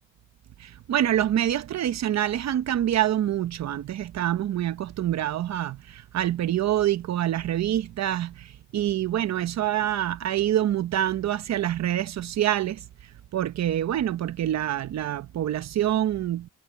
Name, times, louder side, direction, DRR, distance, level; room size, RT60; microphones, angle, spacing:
voice 1, 0.6-12.8 13.3-16.5, right 11 dB, 60° right, 1.0 m, -26 dB
cardioid pair, 90°, 30 cm